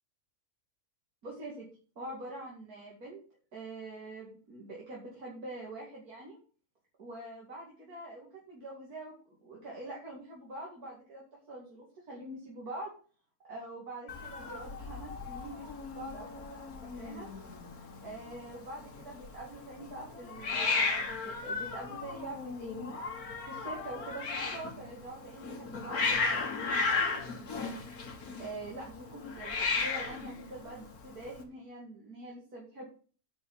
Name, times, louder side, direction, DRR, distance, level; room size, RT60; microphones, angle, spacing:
voice 1, 1.2-1.7 2.0-3.2 3.5-6.4 7.0-9.1 9.4-12.9 13.5-17.3 18.0-22.8 23.5-27.7 28.4-32.8, right 2 dB, 80° right, -3 dB, 3.0 m, -45 dB
Hiss, 14.1-31.4, left 4 dB, 75° left, 2.1 m, -35 dB
8.9 x 5.4 x 7.2 m, 0.41 s
omnidirectional pair, 1.6 m